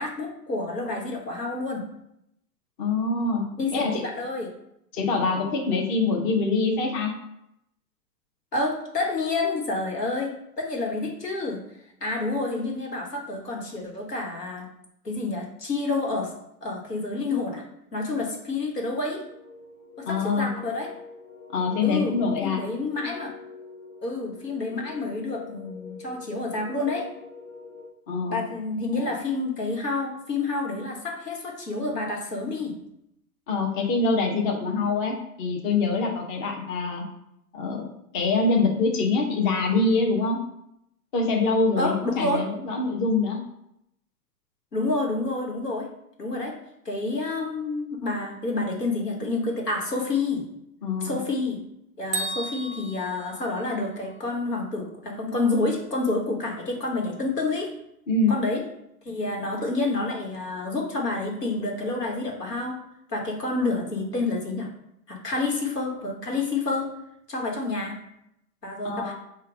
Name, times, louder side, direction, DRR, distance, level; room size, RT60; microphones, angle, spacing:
voice 1, 0.0-1.9 3.6-4.5 8.5-11.6 12.0-14.7 15.0-16.3 16.6-17.6 17.9-19.3 20.0-20.9 21.8-23.3 24.0-27.1 28.3-32.8 41.8-42.5 44.7-45.9 46.2-46.5 46.8-50.5 51.0-51.6 52.0-57.7 58.3-58.6 59.0-62.8 63.1-64.7 65.1-66.9 67.3-68.0 68.6-69.1, left 3 dB, 90° left, 0 dB, 1.2 m, -28 dB
voice 2, 2.8-3.4 3.7-3.9 4.9-7.1 20.1-20.5 21.5-22.6 28.1-28.4 33.5-37.0 37.5-37.8 38.1-40.4 41.1-43.4 50.8-51.2 58.1-58.3 68.8-69.1, left 3 dB, 35° left, 2 dB, 0.8 m, -24 dB
sound 1, 18.8-27.9, left 4 dB, 65° left, 1.1 m, -46 dB
Bell, 52.1-54.2, right 2 dB, 25° right, 0.3 m, -34 dB
4.4 x 2.3 x 4.7 m, 0.79 s
figure-of-eight pair, 110°, 46 cm